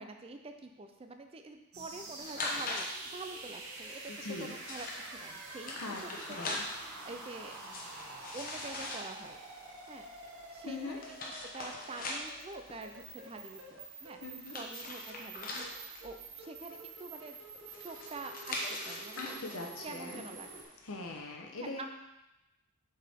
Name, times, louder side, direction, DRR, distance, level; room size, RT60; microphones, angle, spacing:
voice 1, 0.0-4.0 4.4-6.0 6.3-6.6 6.9-7.5 8.3-9.4 9.9-10.1 10.5-11.2 11.5-14.2 14.5-17.4 17.8-20.5 21.6-21.9, right 3 dB, 25° right, 6 dB, 0.4 m, -46 dB
sound 1, 1.7-20.6, right 3 dB, 75° right, 1.2 m, -48 dB
sound 2, 2.2-21.1, left 2 dB, 40° left, 0.9 m, -43 dB
voice 2, 4.1-4.5 5.8-6.6 10.6-11.0 14.2-14.6 19.2-20.3 20.8-21.9, left 3 dB, 75° left, 1 dB, 1.0 m, -41 dB
7.4 x 4.6 x 3.5 m, 0.97 s
head